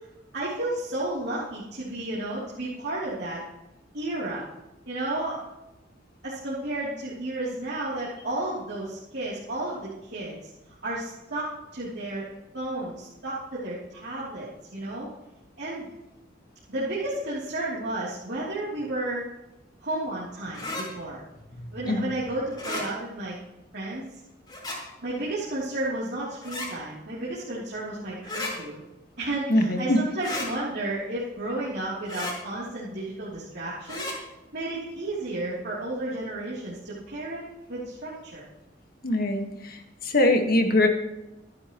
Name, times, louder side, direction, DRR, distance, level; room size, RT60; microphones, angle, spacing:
voice 1, 0.3-3.4 3.9-4.4 4.9-5.4 6.2-10.5 10.8-12.3 12.5-15.1 15.6-15.9 16.7-19.2 19.8-21.2 21.7-23.4 23.7-24.2 25.0-28.8 29.2-34.1 34.5-38.4, right 2 dB, 60° right, -8 dB, 3.2 m, -32 dB
sound 1, 20.5-20.9 22.5-22.9 24.5-24.8 26.4-26.7 28.2-28.5 30.2-30.5 32.1-32.4 33.9-34.2, left 2 dB, 25° left, 4.8 m, -33 dB
voice 2, 29.5-30.0 39.0-40.9, left 1 dB, 50° left, 4 dB, 1.7 m, -23 dB
25.0 x 9.7 x 3.1 m, 0.97 s
head